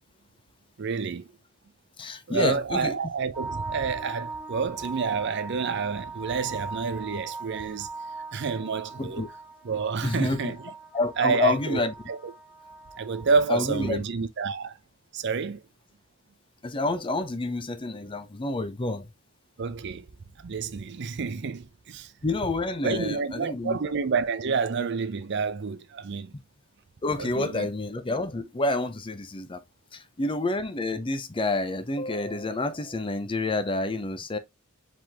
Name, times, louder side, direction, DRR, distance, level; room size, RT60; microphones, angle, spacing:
voice 1, 0.8-1.4 2.3-7.9 8.3-9.2 9.6-10.6 11.2-11.8 12.1-12.3 13.0-14.8 15.1-15.6 19.6-20.1 20.4-22.1 22.8-26.3 27.2-27.7, right 5 dB, 60° right, 0.5 m, -29 dB
voice 2, 2.0-3.0 9.0-9.3 10.0-10.5 10.9-11.9 13.5-14.0 16.6-19.1 22.2-23.8 27.0-29.6 29.9-34.4, left 2 dB, 25° left, 0.6 m, -28 dB
sound 1, 3.3-13.9, right 3 dB, 5° right, 1.0 m, -40 dB
4.9 x 3.7 x 2.9 m
head